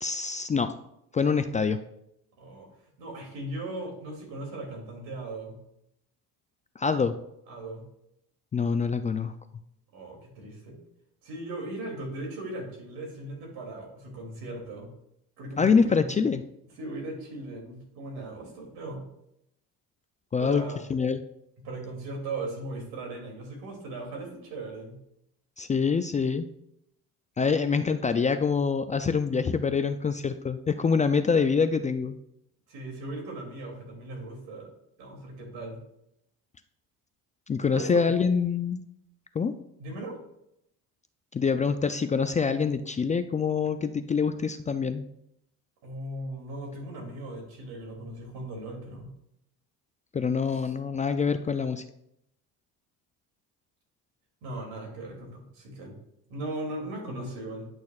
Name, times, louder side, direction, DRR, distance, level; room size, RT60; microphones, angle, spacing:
voice 1, 0.0-0.7 1.1-1.8 6.8-7.2 8.5-9.3 15.6-16.4 20.3-20.6 20.9-21.2 25.6-26.5 27.4-32.2 37.5-38.8 39.4-39.6 41.3-45.0 50.1-51.8, left 5 dB, 20° left, 9 dB, 0.3 m, -25 dB
voice 2, 2.4-2.7 3.0-5.6 7.5-7.9 9.9-10.8 11.2-14.9 15.4-16.2 16.8-19.0 20.4-20.8 21.6-25.0 32.7-34.7 35.0-35.8 37.6-37.9 39.8-40.2 45.8-49.1 50.5-50.7 54.4-56.0 56.3-57.7, right 2 dB, 80° right, 0 dB, 2.7 m, -38 dB
10.5 x 6.3 x 2.4 m, 0.79 s
cardioid pair, 95°, 37 cm